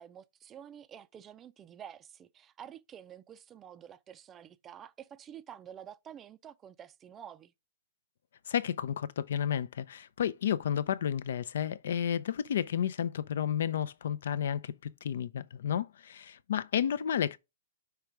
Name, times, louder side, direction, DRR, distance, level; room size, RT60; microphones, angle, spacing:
voice 1, 0.0-7.5, right 9 dB, 20° right, 0.4 m, -49 dB
voice 2, 8.5-14.7 15.0-17.4, left 9 dB, 75° left, 0.5 m, -31 dB
5.7 x 3.4 x 4.8 m
hypercardioid pair, 160°, 0 cm